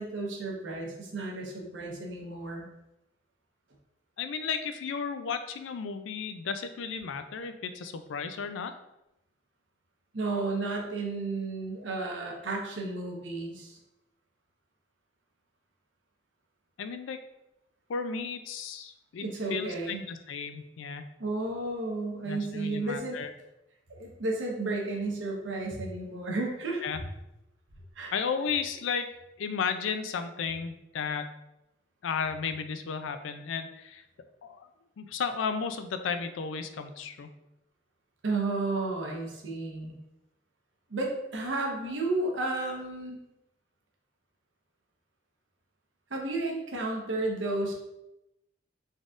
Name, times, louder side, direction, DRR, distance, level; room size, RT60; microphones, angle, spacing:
voice 1, 0.0-2.7 10.1-13.8 19.2-20.0 21.2-23.2 23.9-26.9 28.0-28.1 38.2-40.0 40.9-43.2 46.1-47.7, right 2 dB, 85° right, 0 dB, 0.9 m, -32 dB
voice 2, 4.2-8.7 16.8-17.2 17.9-19.2 19.5-21.1 22.2-23.3 26.8-27.0 28.1-29.1 29.4-31.3 32.0-34.0 34.4-34.7 35.0-37.3, left 6 dB, 90° left, 9 dB, 0.4 m, -34 dB
4.0 x 3.6 x 2.4 m, 0.90 s
head